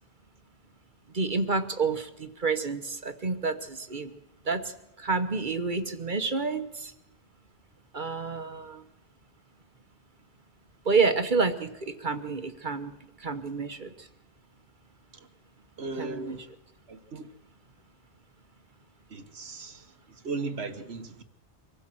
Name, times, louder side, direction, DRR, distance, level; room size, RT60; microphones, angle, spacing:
voice 1, 1.1-4.1 4.5-4.6 5.0-6.9 7.9-8.8 10.8-14.1 16.0-16.4, right 4 dB, 50° right, 1.2 m, -29 dB
voice 2, 15.8-16.4 16.9-17.3 19.1-21.2, right 3 dB, 70° right, 1.5 m, -37 dB
24.5 x 16.0 x 7.7 m
omnidirectional pair, 1.1 m